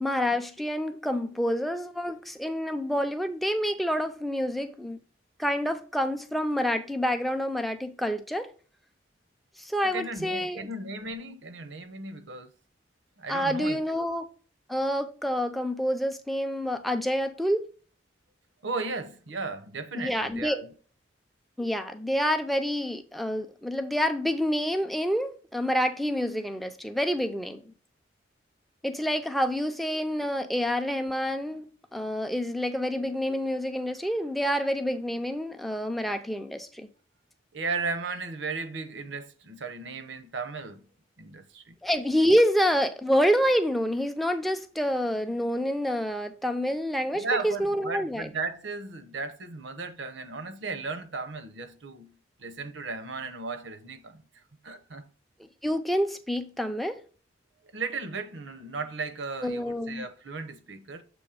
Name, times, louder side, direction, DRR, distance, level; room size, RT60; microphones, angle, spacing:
voice 1, 0.0-5.0 5.4-8.5 9.6-10.7 13.3-14.3 14.7-17.6 19.9-20.6 21.6-27.6 28.8-36.9 41.8-48.3 55.4-57.0 59.4-60.1, equal, ahead, 0.5 m, -28 dB
voice 2, 9.8-12.5 13.2-14.1 18.6-20.7 37.5-40.8 41.2-41.8 47.1-54.2 54.6-55.0 57.7-61.0, right 3 dB, 75° right, 0.8 m, -35 dB
7.0 x 3.1 x 4.8 m
head